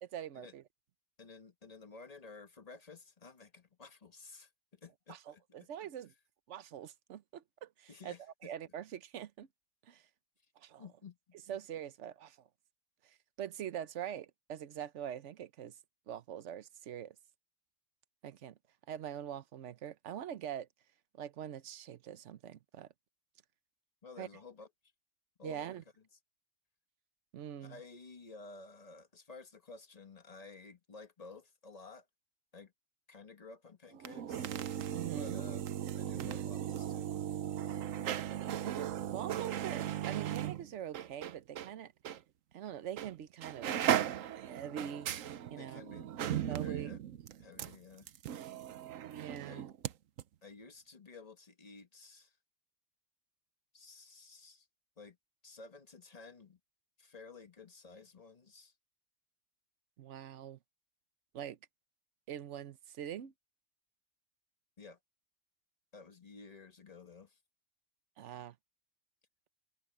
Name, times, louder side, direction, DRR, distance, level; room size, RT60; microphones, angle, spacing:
voice 1, 0.0-0.6 5.1-6.1 6.5-8.1 8.4-9.5 9.8-10.0 10.6-10.8 11.5-12.5 13.0-15.7 16.1-17.2 18.2-18.6 18.9-20.7 21.1-22.9 24.2-24.3 25.4-25.8 27.3-27.8 34.9-35.4 38.6-41.9 42.5-43.7 44.3-45.1 45.5-45.8 46.5-46.9 49.2-49.7 60.0-60.6 61.3-61.6 62.3-63.3 68.2-68.6, right 10 dB, 70° right, 1.1 m, -43 dB
voice 2, 1.2-5.7 7.9-8.5 10.8-11.3 24.0-24.7 25.4-25.8 27.6-32.1 32.5-32.7 33.1-34.6 35.1-35.7 35.9-37.1 45.6-47.0 47.4-48.1 49.5-49.7 50.4-52.4 53.7-54.7 55.0-55.2 55.4-56.6 57.0-58.7 64.8-65.0 65.9-67.4, left 4 dB, 30° left, 1.3 m, -53 dB
sound 1, 33.9-41.7 42.1-42.2 43.0-43.2 43.4-49.9 50.2-50.3, right 10 dB, 90° right, 1.2 m, -37 dB
open air
omnidirectional pair, 1.3 m